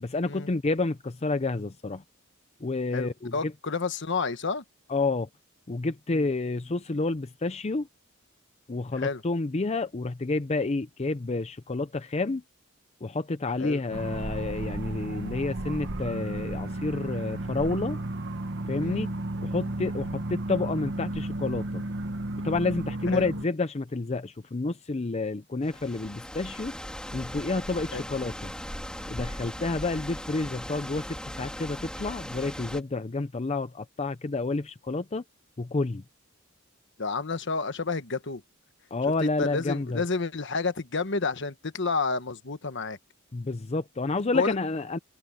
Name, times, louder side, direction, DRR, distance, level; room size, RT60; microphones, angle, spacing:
voice 1, 0.0-2.0 2.6-3.5 4.9-5.3 5.7-7.9 8.7-12.4 13.0-18.0 18.7-19.1 19.4-21.8 22.4-26.7 27.1-28.5 29.1-35.2 35.6-36.0 38.9-40.0 43.3-45.0, left 3 dB, 30° left, 0.6 m, -29 dB
voice 2, 2.9-4.6 6.1-6.3 9.0-9.2 13.6-13.8 18.8-19.0 23.1-23.3 27.9-28.0 37.0-38.4 39.2-43.0 44.3-44.5, left 4 dB, 60° left, 1.3 m, -30 dB
sound 1, 13.9-23.4, right 1 dB, 60° right, 1.6 m, -33 dB
sound 2, 25.6-32.8, equal, 5° left, 3.4 m, -38 dB
open air
head